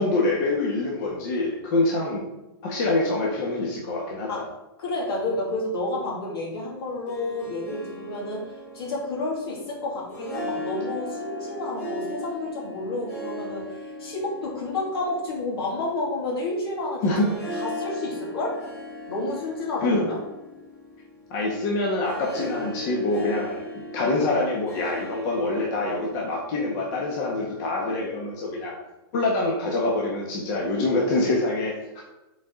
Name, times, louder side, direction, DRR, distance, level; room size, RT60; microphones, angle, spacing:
voice 1, 0.0-2.2 2.6-4.4 17.0-17.3 19.8-20.0 21.3-23.6 23.9-28.7 29.1-32.0, left 2 dB, 45° left, -2 dB, 1.5 m, -25 dB
voice 2, 4.8-17.2 17.5-18.6 19.1-20.2, left 2 dB, 75° left, -2 dB, 2.5 m, -30 dB
Harp, 6.8-26.7, equal, 15° left, 2.3 m, -38 dB
7.8 x 4.2 x 3.8 m, 0.99 s
hypercardioid pair, 135°, 13 cm